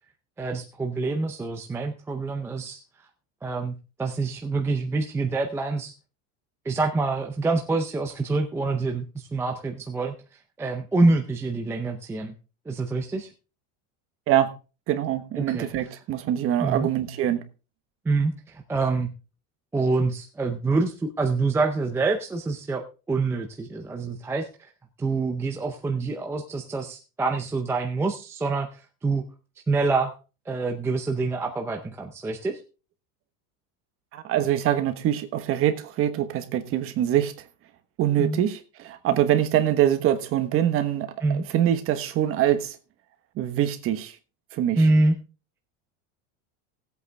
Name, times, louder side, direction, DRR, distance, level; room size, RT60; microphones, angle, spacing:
voice 1, 0.4-2.8 3.4-5.9 6.7-10.1 10.6-12.3 12.7-13.3 15.4-15.7 16.6-16.9 18.1-19.1 19.7-22.8 23.1-24.5 25.0-28.7 29.0-29.2 29.7-30.1 30.5-32.6 38.2-38.4 41.2-41.4 44.7-45.2, right 3 dB, 5° right, 0.5 m, -26 dB
voice 2, 14.9-17.4 34.1-37.3 38.0-41.1 41.5-42.8 43.4-44.1 44.5-44.8, right 11 dB, 35° right, 1.2 m, -24 dB
17.0 x 8.2 x 3.4 m
cardioid pair, 175°, 40 cm